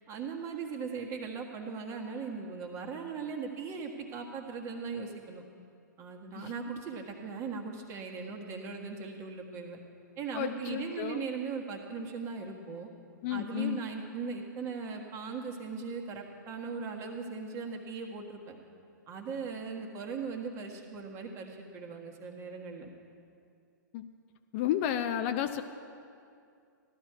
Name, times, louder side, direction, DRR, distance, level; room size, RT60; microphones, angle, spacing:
voice 1, 0.1-5.4 6.0-9.8 10.2-12.9 13.3-18.6 19.1-22.9, right 5 dB, 25° right, 1 dB, 1.6 m, -39 dB
voice 2, 10.3-11.2 13.2-13.8 23.9-24.1 24.5-25.6, left 11 dB, 40° left, 8 dB, 0.5 m, -32 dB
15.0 x 12.5 x 4.7 m, 2.4 s
hypercardioid pair, 130°, 11 cm